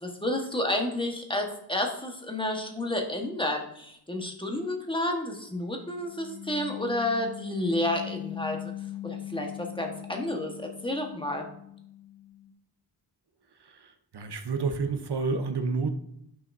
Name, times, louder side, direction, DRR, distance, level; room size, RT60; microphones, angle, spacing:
voice 1, 0.0-8.6 9.0-10.5 10.8-11.5, left 1 dB, 10° left, 2 dB, 1.2 m, -30 dB
sound 1, 5.9-12.5, left 13 dB, 35° right, 1.5 m, -41 dB
voice 2, 14.1-15.9, right 4 dB, 75° right, 8 dB, 0.8 m, -29 dB
9.6 x 5.7 x 2.6 m, 0.74 s
wide cardioid pair, 85°, 40 cm